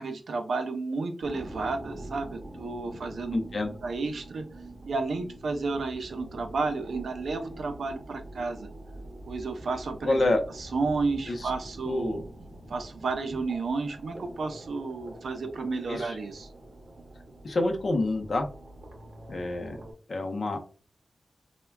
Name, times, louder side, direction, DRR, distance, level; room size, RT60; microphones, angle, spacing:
voice 1, 0.0-3.4 3.8-4.4 4.8-8.7 9.3-12.2 12.7-16.5, right 3 dB, 85° right, 6 dB, 0.4 m, -32 dB
sound 1, 1.2-19.9, right 1 dB, 60° right, 0.8 m, -45 dB
voice 2, 3.3-3.7 10.0-10.4 11.3-11.5 11.8-12.2 15.9-16.2 17.4-18.5 19.3-19.8 20.1-20.6, left 2 dB, 60° left, 4 dB, 0.5 m, -27 dB
3.3 x 2.1 x 2.2 m, 0.38 s
wide cardioid pair, 100°, 0 cm